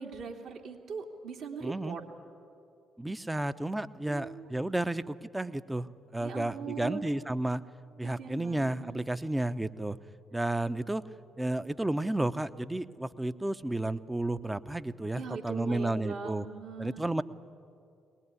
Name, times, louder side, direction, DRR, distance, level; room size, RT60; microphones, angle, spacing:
voice 1, 0.0-2.0 4.0-4.5 6.2-7.1 8.0-9.1 15.2-17.0, right 5 dB, 60° right, 1 dB, 2.9 m, -41 dB
voice 2, 1.6-2.0 3.0-7.6 8.0-10.0 10.3-11.0 11.4-16.5 16.8-17.2, right 1 dB, 10° right, 13 dB, 0.9 m, -32 dB
22.0 x 20.0 x 9.8 m, 2.4 s
figure-of-eight pair, 45°, 0 cm